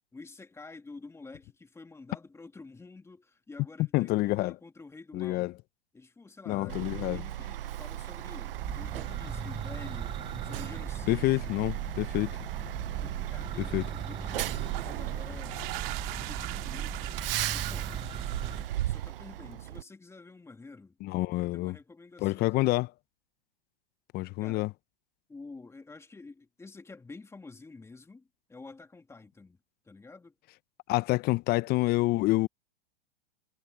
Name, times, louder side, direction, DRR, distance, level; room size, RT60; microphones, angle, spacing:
voice 1, 0.0-5.6 5.9-11.7 12.0-12.5 13.0-15.7 16.1-17.2 17.5-18.0 18.8-21.0 21.4-22.7 24.4-24.7 25.3-29.6 29.8-30.3, left 3 dB, 10° left, 2.2 m, -49 dB
voice 2, 3.9-4.5 5.1-5.5 6.5-7.2 11.1-12.3 13.7-13.9 21.0-21.8 22.2-22.9 24.1-24.7 30.9-32.5, left 19 dB, 35° left, 0.8 m, -27 dB
Truck, 6.7-19.8, right 13 dB, 70° right, 0.7 m, -37 dB
Church bell, 8.4-18.7, right 7 dB, 20° right, 3.2 m, -39 dB
sound 1, 14.6-19.2, right 25 dB, 50° right, 2.3 m, -42 dB
hypercardioid pair, 115°, 29 cm